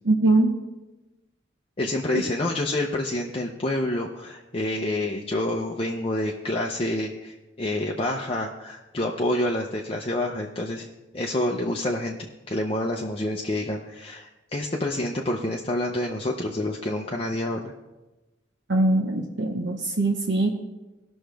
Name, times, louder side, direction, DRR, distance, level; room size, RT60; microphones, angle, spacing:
voice 1, 0.0-0.5 2.1-2.2 18.7-20.5, right 2 dB, 70° right, 1 dB, 0.9 m, -22 dB
voice 2, 1.8-10.8 11.1-17.7, left 1 dB, 30° left, 0 dB, 0.6 m, -28 dB
18.5 x 6.3 x 3.4 m, 1.1 s
head